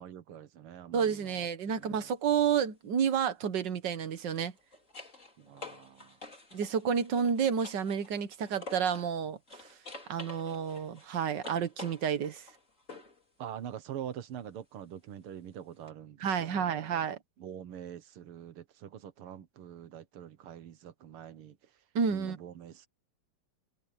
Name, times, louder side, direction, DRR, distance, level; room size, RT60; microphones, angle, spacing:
voice 1, 0.0-2.1 5.4-6.2 13.4-17.1 17.4-21.6 22.1-22.9, right 10 dB, 85° right, 2.1 m, -45 dB
voice 2, 0.9-4.5 6.5-9.4 10.1-12.5 16.2-17.2 22.0-22.4, right 7 dB, 60° right, 1.8 m, -30 dB
sound 1, 1.7-1.9 4.2-9.2 9.5-13.2 15.9-16.0, left 3 dB, 35° left, 5.0 m, -49 dB
omnidirectional pair, 2.4 m